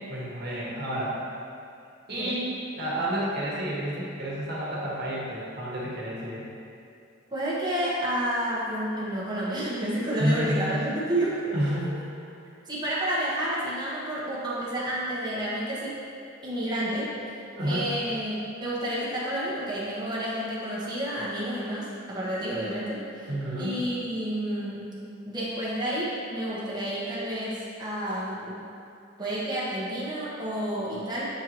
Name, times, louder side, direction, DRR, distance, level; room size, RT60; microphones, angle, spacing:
voice 1, 0.1-1.2 2.1-6.4 10.2-10.7 11.5-11.9 12.2-12.3 17.6-17.9 23.3-23.8, equal, 55° right, -6 dB, 1.5 m, -30 dB
voice 2, 7.3-11.5 12.7-16.0 16.4-17.1 17.6-18.3 18.6-23.3 23.6-24.8 25.3-28.6 29.2-31.2, right 1 dB, 20° right, -8 dB, 1.2 m, -30 dB
7.1 x 4.6 x 3.0 m, 2.6 s
head